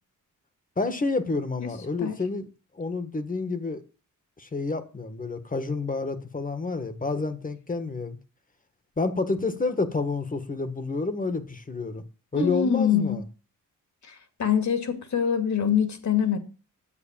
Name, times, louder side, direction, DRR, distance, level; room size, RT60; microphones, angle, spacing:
voice 1, 0.8-2.5 2.7-3.8 4.4-8.2 9.0-12.0 12.3-13.2, left 3 dB, 25° left, 1.4 m, -29 dB
voice 2, 12.3-13.2 14.0-16.4, left 8 dB, 60° left, 2.4 m, -24 dB
10.0 x 7.8 x 7.3 m
cardioid pair, 105°, 32 cm